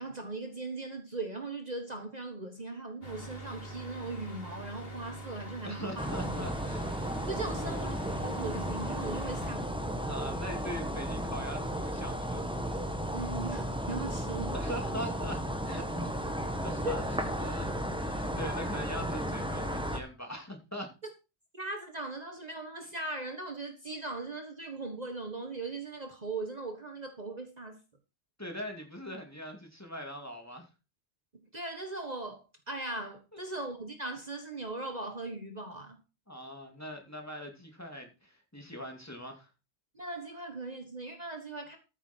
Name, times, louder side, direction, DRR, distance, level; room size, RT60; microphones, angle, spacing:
voice 1, 0.0-6.1 7.3-9.7 13.1-14.5 16.8-17.0 21.5-27.8 31.5-36.0 39.9-41.8, right 2 dB, 35° right, 1.6 m, -39 dB
sound 1, 3.0-9.5, right 1 dB, 55° left, 2.6 m, -44 dB
voice 2, 5.6-7.2 7.5-7.9 10.0-12.6 14.5-17.7 18.0-20.9 28.4-30.7 33.3-33.4 36.3-39.5, equal, 15° left, 2.6 m, -42 dB
sound 2, 6.0-20.0, equal, 5° right, 1.3 m, -34 dB
14.0 x 7.7 x 4.5 m
omnidirectional pair, 1.2 m